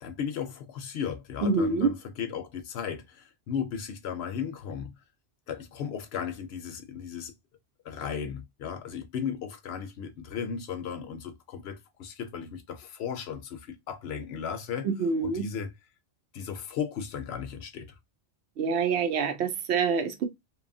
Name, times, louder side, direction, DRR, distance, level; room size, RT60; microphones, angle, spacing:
voice 1, 0.0-4.9 5.5-7.3 7.8-14.9 15.2-15.7 16.3-18.0, left 7 dB, 70° left, 0.8 m, -35 dB
voice 2, 1.4-1.9 14.8-15.5 18.6-20.2, right 5 dB, 70° right, 0.9 m, -26 dB
2.8 x 2.3 x 2.5 m
omnidirectional pair, 1.2 m